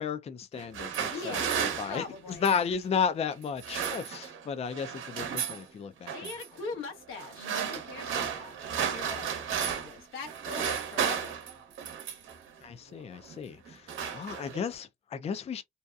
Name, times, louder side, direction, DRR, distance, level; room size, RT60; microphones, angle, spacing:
voice 1, 0.0-6.3 12.6-13.9 14.1-15.6, left 6 dB, 30° left, 0.4 m, -33 dB
sound 1, 0.5-2.7 3.4-4.5 4.7-5.6 6.1-6.5 7.2-10.0 10.3-12.4 13.1-13.4 13.7-14.7, right 8 dB, 80° right, 0.8 m, -34 dB
voice 2, 1.1-2.5 6.1-9.3 9.5-11.3, left 4 dB, 90° left, 1.0 m, -42 dB
2.7 x 2.2 x 2.3 m
cardioid pair, 90°, 20 cm